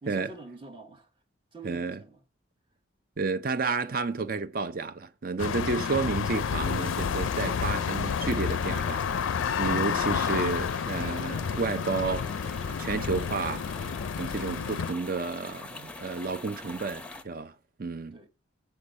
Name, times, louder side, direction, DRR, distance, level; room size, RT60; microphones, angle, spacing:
voice 1, 0.0-1.1 1.5-2.2 5.6-6.1 18.1-18.3, right 2 dB, 25° right, 1.1 m, -46 dB
voice 2, 1.6-2.0 3.2-12.3 12.8-13.6 14.2-17.5 17.8-18.2, right 4 dB, 45° right, 0.6 m, -31 dB
sound 1, 5.4-14.9, left 6 dB, 85° left, 0.4 m, -30 dB
sound 2, 6.6-17.2, left 2 dB, 5° left, 0.7 m, -43 dB
8.4 x 4.6 x 6.3 m
head